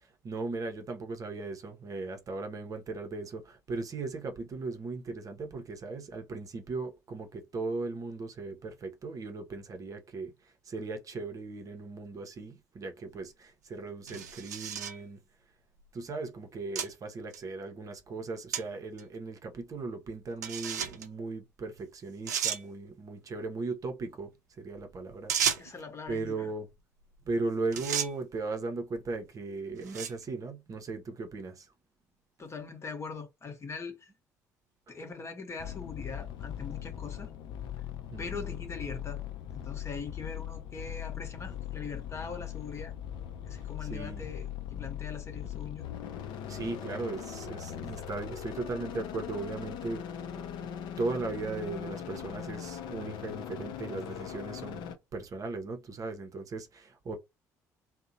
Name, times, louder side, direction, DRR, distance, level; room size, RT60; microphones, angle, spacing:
voice 1, 0.0-15.2 15.9-25.3 26.1-26.7 27.3-31.7 38.1-38.4 43.9-44.2 46.5-50.7 51.0-57.2, right 3 dB, 40° right, 0.6 m, -37 dB
sound 1, 13.1-13.2 14.1-15.0 15.8-15.9 16.8-16.9 17.3-17.4 18.5-18.6 19.0-19.1 20.4-21.1 21.8-21.9 22.3-22.6 25.3-25.8 27.2-27.4 27.7-28.1 28.9-29.2 29.8-30.2, right 8 dB, 80° right, 0.4 m, -32 dB
voice 2, 25.5-26.5 32.4-34.1 34.9-37.3 38.2-39.2 39.5-42.9 43.4-45.9, left 4 dB, 30° left, 0.9 m, -42 dB
sound 2, 35.6-54.9, left 10 dB, 55° left, 0.5 m, -40 dB
2.6 x 2.0 x 2.6 m
figure-of-eight pair, 50°, 9 cm